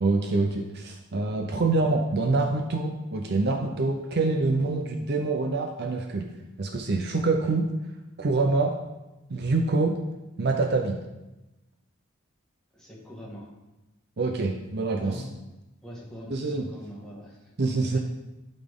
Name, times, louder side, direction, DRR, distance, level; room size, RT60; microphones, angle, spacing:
voice 1, 0.0-6.3 6.6-7.7 8.2-8.7 9.3-9.9 10.4-11.0 14.2-15.2 16.3-16.6 17.6-18.0, right 3 dB, 50° right, 3 dB, 0.5 m, -25 dB
voice 2, 12.7-13.5 15.0-15.3 15.8-18.0, equal, 5° left, -5 dB, 1.6 m, -43 dB
11.5 x 4.1 x 3.6 m, 1.0 s
head